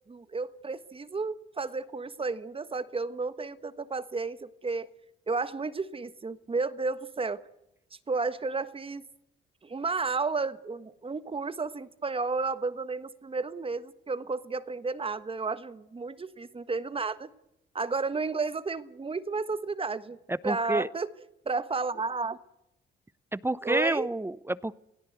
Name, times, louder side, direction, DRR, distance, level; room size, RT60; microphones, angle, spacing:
voice 1, 0.1-4.9 5.3-7.4 8.1-9.0 9.6-17.3 17.7-20.2 20.4-21.1 21.4-22.4 23.6-24.1, right 4 dB, 25° right, 13 dB, 1.4 m, -32 dB
voice 2, 20.3-20.9 23.3-24.7, right 2 dB, 10° right, 18 dB, 0.8 m, -29 dB
28.0 x 17.5 x 8.0 m, 0.87 s
cardioid pair, 90°, 20 cm